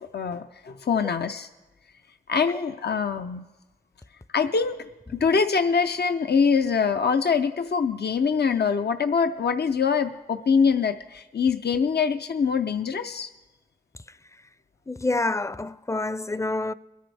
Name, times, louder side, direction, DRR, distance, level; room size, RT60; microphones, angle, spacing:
voice 1, 0.1-1.5 2.3-3.4 4.3-4.8 5.1-13.3, left 5 dB, 75° left, 0.5 m, -24 dB
voice 2, 14.9-16.7, left 2 dB, 15° left, 0.4 m, -27 dB
22.5 x 10.0 x 3.4 m
wide cardioid pair, 45°, 17 cm